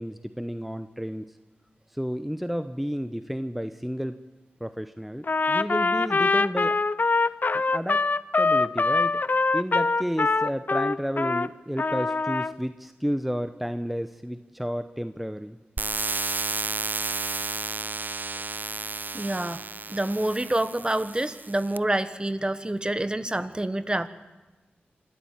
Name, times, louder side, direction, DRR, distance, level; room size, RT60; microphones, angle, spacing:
voice 1, 0.0-1.4 1.9-4.2 4.6-6.8 7.5-8.0 8.4-9.2 9.5-15.6, equal, 5° right, 10 dB, 0.9 m, -31 dB
Trumpet, 5.2-11.5 11.8-12.5, left 3 dB, 50° left, 0.7 m, -24 dB
sound 1, 15.8-21.8, right 3 dB, 50° right, 0.6 m, -32 dB
voice 2, 19.1-24.1, right 1 dB, 20° right, 12 dB, 1.3 m, -27 dB
26.0 x 13.0 x 8.9 m, 1.1 s
cardioid pair, 45°, 4 cm